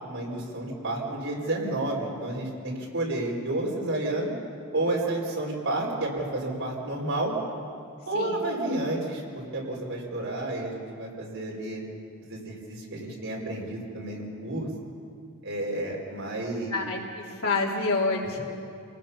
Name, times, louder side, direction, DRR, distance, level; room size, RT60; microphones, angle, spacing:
voice 1, 0.0-4.3 4.7-7.3 8.1-9.2 9.5-11.8 12.2-14.7 15.4-16.8, right 2 dB, 60° right, -2 dB, 5.0 m, -30 dB
voice 2, 16.7-18.4, left 3 dB, 75° left, -3 dB, 3.6 m, -28 dB
28.5 x 19.0 x 5.8 m, 2.5 s
head